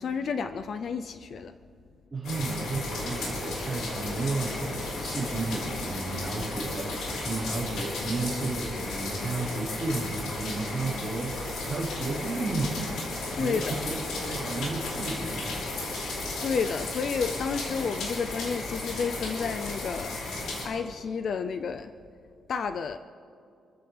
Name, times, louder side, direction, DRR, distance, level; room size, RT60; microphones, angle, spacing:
voice 1, 0.0-1.5 13.4-13.8 16.4-21.9 22.5-23.0, left 5 dB, 50° left, 9 dB, 0.5 m, -31 dB
voice 2, 2.1-13.0 13.4-13.9 14.2-15.5, right 3 dB, 20° right, -7 dB, 4.8 m, -33 dB
sound 1, 2.2-20.7, left 2 dB, 90° left, 4.6 m, -34 dB
28.0 x 15.0 x 3.4 m, 2.4 s
cardioid pair, 165°, 0 cm